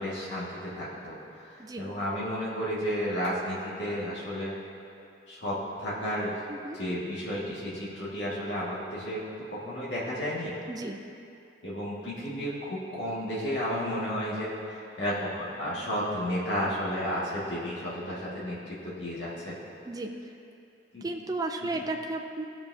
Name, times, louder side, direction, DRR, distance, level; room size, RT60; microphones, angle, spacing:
voice 1, 0.0-4.6 5.3-6.3 6.7-9.2 9.5-10.5 11.6-19.5 20.9-21.1 21.7-21.8, equal, 75° left, -7 dB, 1.9 m, -32 dB
voice 2, 6.5-6.8 10.7-11.0 19.9-20.1 21.0-22.5, right 2 dB, 20° right, 3 dB, 0.4 m, -34 dB
15.5 x 6.9 x 2.7 m, 2.6 s
head